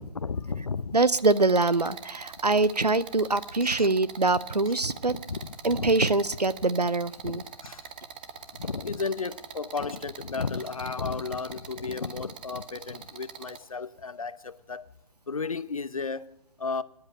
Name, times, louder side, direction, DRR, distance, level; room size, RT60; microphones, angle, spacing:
voice 1, 0.0-1.0 3.6-3.9 5.1-5.9 7.2-7.9 8.5-14.9 15.3-16.8, left 4 dB, 60° left, 0.8 m, -34 dB
voice 2, 0.9-5.1 5.6-7.4, right 3 dB, 85° right, 0.7 m, -24 dB
sound 1, 1.2-13.6, right 7 dB, 15° right, 0.5 m, -43 dB
14.0 x 10.5 x 8.8 m
figure-of-eight pair, 145°, 20 cm